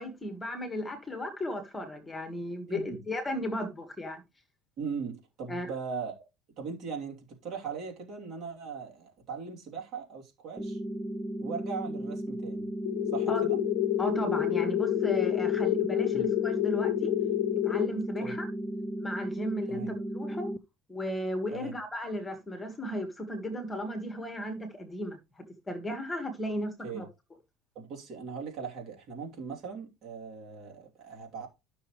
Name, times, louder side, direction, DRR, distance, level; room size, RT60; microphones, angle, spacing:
voice 1, 0.0-4.2 5.5-5.7 13.3-13.4 14.0-17.1 17.6-18.5 19.0-20.5 20.9-25.2 25.7-27.1, left 1 dB, 15° left, 1.7 m, -35 dB
voice 2, 2.7-3.0 4.8-6.3 6.6-10.8 11.4-12.7 13.1-13.6 16.1-16.3 18.2-18.4 19.7-19.9 21.5-21.7 26.8-27.0 27.7-31.5, right 5 dB, 45° right, 3.0 m, -39 dB
sound 1, 10.6-20.6, right 1 dB, 5° right, 0.6 m, -35 dB
sound 2, 12.9-17.9, left 19 dB, 85° left, 0.6 m, -28 dB
12.5 x 6.3 x 3.2 m
cardioid pair, 140°, 0 cm